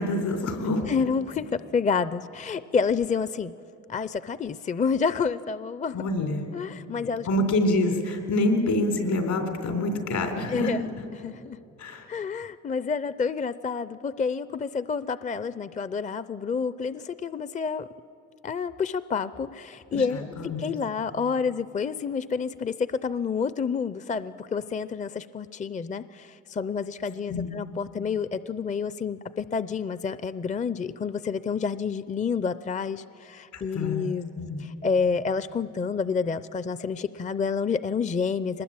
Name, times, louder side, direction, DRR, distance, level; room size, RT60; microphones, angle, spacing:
voice 1, 0.0-0.8 5.9-6.5 7.3-10.7 11.8-12.1 19.9-20.6 27.3-27.5 33.5-34.6, left 2 dB, 75° left, 5 dB, 3.9 m, -26 dB
voice 2, 0.9-3.5 3.9-6.0 6.5-7.5 10.5-11.6 12.1-17.9 18.4-34.3 34.6-38.6, left 5 dB, 25° left, 15 dB, 0.5 m, -29 dB
23.0 x 20.0 x 8.7 m, 2.6 s
cardioid pair, 90°, 30 cm